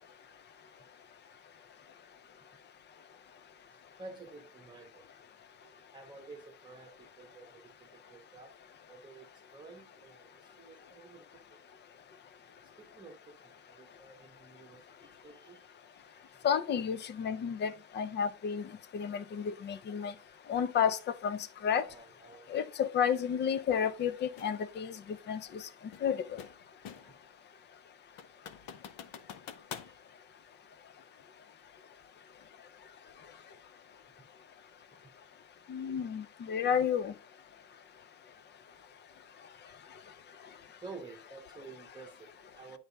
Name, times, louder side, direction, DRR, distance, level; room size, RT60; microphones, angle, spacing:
voice 1, 0.0-1.5 3.7-5.0 5.6-8.6 8.9-11.6 12.6-15.7 15.9-16.5 21.9-22.6 26.9-27.4 28.7-29.1 29.5-30.1 39.4-39.9 40.8-42.8, right 3 dB, 10° right, 1.2 m, -53 dB
voice 2, 16.4-18.7 18.9-20.1 20.5-21.8 22.5-25.6 26.0-26.4 35.7-37.1, left 8 dB, 30° left, 0.4 m, -31 dB
sound 1, 24.4-24.6 25.9-27.2 27.6-27.7 28.2-29.9, left 8 dB, 55° left, 0.8 m, -46 dB
9.5 x 3.4 x 4.1 m
cardioid pair, 140°, 41 cm